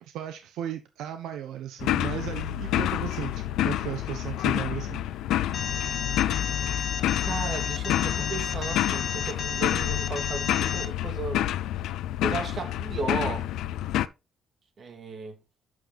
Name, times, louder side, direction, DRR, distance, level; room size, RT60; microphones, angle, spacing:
voice 1, 0.0-5.0, right 11 dB, 85° right, 1.0 m, -36 dB
sound 1, 1.8-14.1, left 13 dB, 85° left, 0.5 m, -28 dB
Alarm, 5.5-10.9, left 6 dB, 45° left, 1.6 m, -32 dB
voice 2, 7.3-11.5 12.2-13.5 14.8-15.4, right 4 dB, 55° right, 2.5 m, -35 dB
8.8 x 6.4 x 4.0 m
cardioid pair, 90°, 0 cm